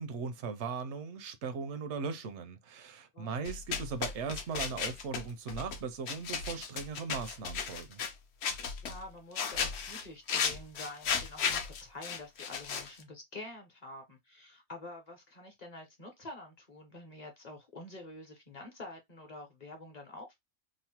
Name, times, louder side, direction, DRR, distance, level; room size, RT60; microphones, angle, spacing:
voice 1, 0.0-8.0, right 5 dB, 80° right, 0.9 m, -38 dB
sound 1, 3.4-5.8 6.1-8.1 8.4-9.0 9.4-13.0, left 6 dB, 70° left, 0.8 m, -35 dB
voice 2, 8.8-20.4, left 2 dB, 40° left, 0.8 m, -47 dB
3.0 x 2.1 x 2.9 m
omnidirectional pair, 1.2 m